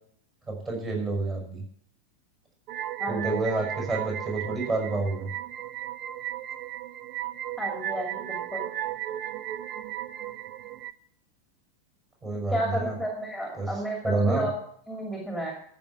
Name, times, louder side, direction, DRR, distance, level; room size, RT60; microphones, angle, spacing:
voice 1, 0.5-1.6 3.1-5.3 12.2-13.0 13.5-13.7 14.0-14.5, right 3 dB, 20° right, 0 dB, 6.0 m, -29 dB
sound 1, 2.7-10.9, right 12 dB, 40° right, 0.6 m, -35 dB
voice 2, 3.0-3.6 7.6-8.7 12.5-14.5 14.9-15.5, equal, 5° right, -1 dB, 2.6 m, -32 dB
14.0 x 5.9 x 8.0 m, 0.66 s
figure-of-eight pair, 90°, 0 cm